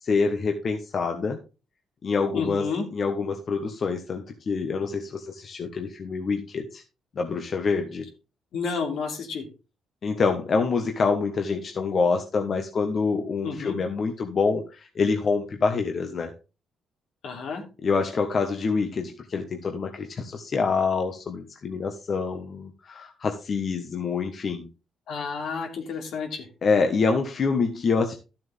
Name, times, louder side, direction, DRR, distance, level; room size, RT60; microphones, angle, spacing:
voice 1, 0.0-1.4 2.0-2.6 2.9-6.8 7.1-8.1 10.0-16.3 17.8-24.7 26.6-28.2, left 4 dB, 50° left, 4 dB, 1.4 m, -26 dB
voice 2, 2.3-2.8 8.5-9.5 13.4-13.8 17.2-17.6 25.1-26.5, left 5 dB, 75° left, 3 dB, 3.0 m, -30 dB
12.5 x 7.6 x 3.6 m, 0.31 s
cardioid pair, 90°, 0 cm